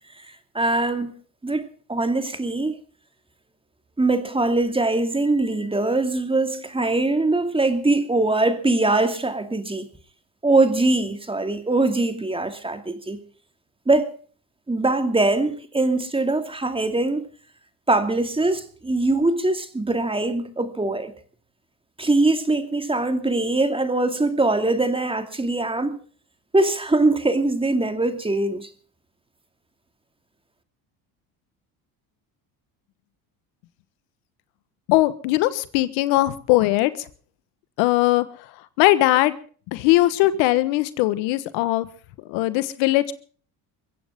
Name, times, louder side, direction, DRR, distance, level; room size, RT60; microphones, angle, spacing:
voice 1, 0.5-1.1 1.4-2.8 4.0-9.9 10.4-13.2 13.9-14.1 14.7-17.2 17.9-21.1 22.0-26.0 26.5-28.7, right 2 dB, 10° right, 2.5 m, -22 dB
voice 2, 34.9-36.9 37.8-38.2 38.8-39.3 39.7-41.9 42.3-43.1, left 17 dB, 85° left, 1.4 m, -20 dB
22.5 x 16.0 x 3.7 m
supercardioid pair, 95°, 43 cm